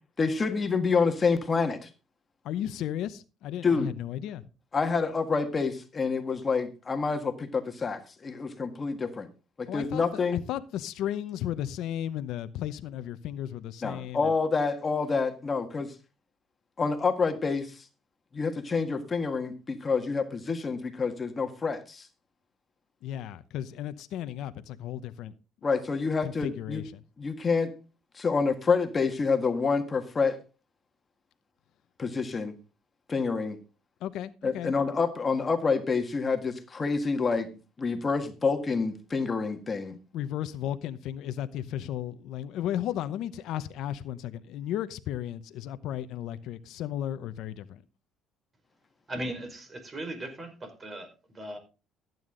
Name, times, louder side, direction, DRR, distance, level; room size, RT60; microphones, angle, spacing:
voice 1, 0.2-1.9 3.6-3.9 4.7-9.3 9.6-10.4 13.8-15.9 16.8-17.9 18.3-22.1 25.6-26.8 27.2-27.7 28.1-30.4 32.0-32.6 33.1-33.6 34.4-37.5 37.8-39.9, left 4 dB, 30° left, 1.7 m, -28 dB
voice 2, 2.4-4.4 9.7-10.2 10.5-14.3 23.0-25.3 26.2-27.0 34.0-34.7 40.1-47.8, left 11 dB, 75° left, 0.8 m, -34 dB
voice 3, 49.1-51.6, right 1 dB, 30° right, 4.9 m, -38 dB
14.0 x 9.4 x 3.8 m
supercardioid pair, 85°, 0 cm